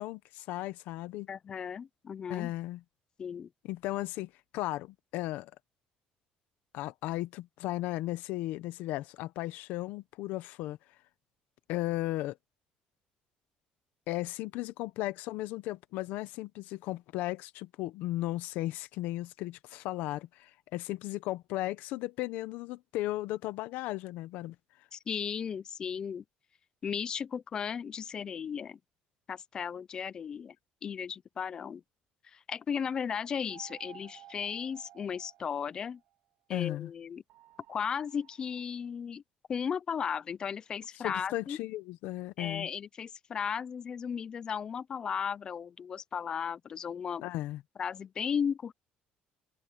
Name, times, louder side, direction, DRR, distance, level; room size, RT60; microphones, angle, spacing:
voice 1, 0.0-1.3 2.3-2.8 3.6-5.5 6.7-10.8 11.7-12.4 14.1-24.5 36.5-36.9 41.0-42.7 47.2-47.6, left 17 dB, 80° left, 0.9 m, -35 dB
voice 2, 1.3-2.5 3.2-3.5 24.9-26.2 26.8-28.8 29.3-30.5 30.8-31.8 32.2-36.0 36.5-37.2 37.7-39.2 39.5-41.6 42.4-47.2 47.8-48.7, left 7 dB, 30° left, 0.4 m, -35 dB
sound 1, 33.5-36.1 37.3-38.6, right 14 dB, 70° right, 2.2 m, -55 dB
cardioid pair, 170°, 3 cm